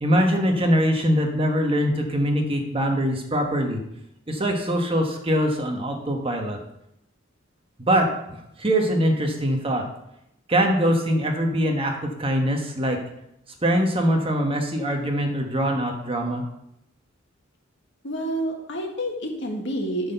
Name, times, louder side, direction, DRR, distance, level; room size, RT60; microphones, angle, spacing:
voice 1, 0.0-3.8 4.3-6.6 7.8-8.1 8.6-9.8 10.5-13.0 13.6-16.4, equal, 30° right, 3 dB, 1.2 m, -23 dB
voice 2, 18.0-20.1, right 1 dB, 60° left, 2 dB, 1.7 m, -28 dB
9.4 x 4.3 x 6.7 m, 0.80 s
head